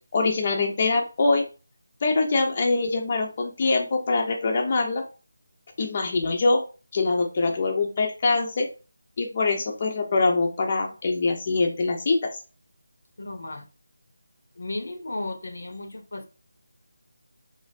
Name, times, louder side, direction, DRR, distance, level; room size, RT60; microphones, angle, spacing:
voice 1, 0.1-1.5 2.0-5.0 5.8-6.6 6.9-8.7 9.2-12.3, left 3 dB, 35° left, 0.5 m, -23 dB
voice 2, 13.2-13.7 14.6-16.3, left 2 dB, 70° left, 0.7 m, -34 dB
3.2 x 2.5 x 2.4 m
figure-of-eight pair, 165°, 0 cm